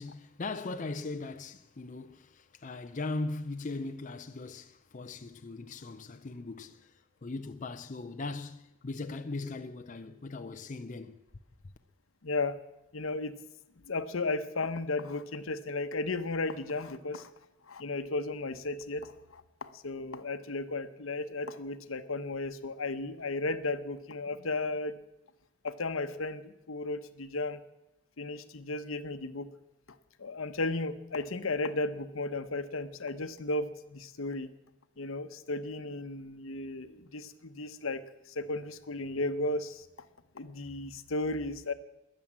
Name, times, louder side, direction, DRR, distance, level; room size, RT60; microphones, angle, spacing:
voice 1, 0.0-6.9 7.2-11.2, left 3 dB, 40° left, 0.6 m, -39 dB
voice 2, 12.2-12.5 12.9-13.4 13.9-17.3 17.7-24.9 25.6-27.6 28.2-29.5 30.2-34.5 35.0-39.9 40.3-41.7, left 2 dB, 80° left, 1.0 m, -34 dB
21.0 x 7.4 x 7.4 m
head